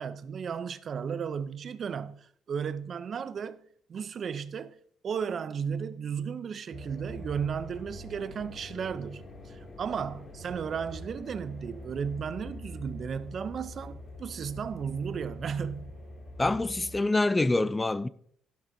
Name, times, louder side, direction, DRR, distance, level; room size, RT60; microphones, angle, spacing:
voice 1, 0.0-3.6 3.9-4.8 5.0-15.9, right 7 dB, 50° right, 0.6 m, -34 dB
sound 1, 6.7-17.0, left 1 dB, 45° left, 2.7 m, -44 dB
voice 2, 16.4-18.1, left 2 dB, 15° left, 0.4 m, -26 dB
11.5 x 11.5 x 2.8 m
supercardioid pair, 75°, 0 cm